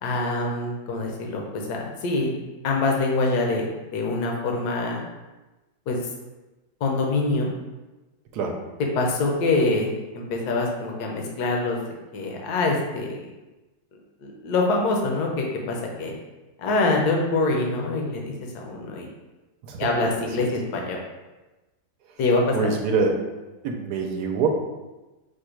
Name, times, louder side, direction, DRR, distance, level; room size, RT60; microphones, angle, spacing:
voice 1, 0.0-3.7 3.9-5.0 5.9-6.0 6.8-7.5 9.0-11.8 12.1-13.3 14.2-16.1 16.6-19.1 19.8-21.0 22.2-22.7, left 3 dB, 70° left, 0 dB, 1.2 m, -25 dB
voice 2, 22.5-23.2 23.6-24.5, right 4 dB, 75° right, 2 dB, 1.1 m, -24 dB
5.1 x 2.2 x 4.4 m, 1.1 s
omnidirectional pair, 1.8 m